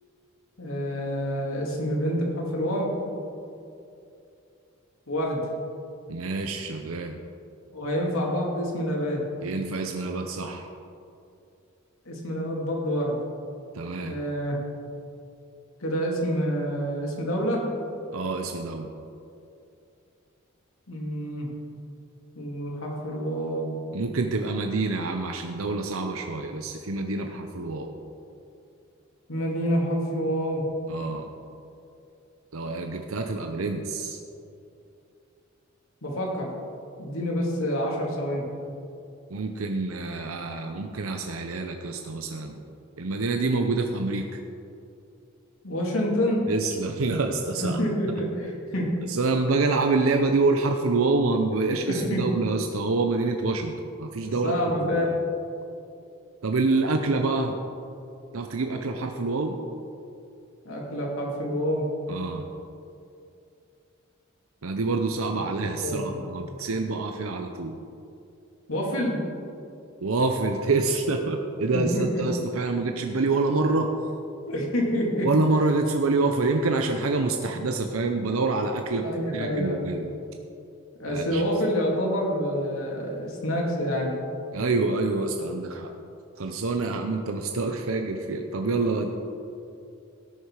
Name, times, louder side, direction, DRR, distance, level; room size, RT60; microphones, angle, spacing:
voice 1, 0.6-2.9 5.1-5.4 7.7-9.2 12.1-13.1 14.0-14.6 15.8-17.7 20.9-21.5 22.3-23.8 29.3-30.7 36.0-36.5 37.0-38.5 45.6-46.5 47.6-48.9 51.9-52.4 54.2-55.2 60.6-61.9 65.6-66.2 68.7-69.2 71.7-72.2 74.5-75.3 77.5-77.6 79.0-79.9 81.0-84.1, equal, 80° left, -2 dB, 2.7 m, -27 dB
voice 2, 6.1-7.2 9.4-10.7 13.7-14.2 18.1-18.9 23.9-27.9 30.9-31.3 32.5-34.2 39.3-42.6 43.0-44.2 46.5-47.8 49.0-53.7 54.0-55.1 56.4-57.6 58.3-59.5 62.1-62.5 64.6-67.8 70.0-73.9 75.2-79.1 79.3-80.1 81.1-81.4 84.5-85.9 86.4-89.1, right 3 dB, 85° right, 4 dB, 0.7 m, -26 dB
17.5 x 6.7 x 4.8 m, 2.6 s
head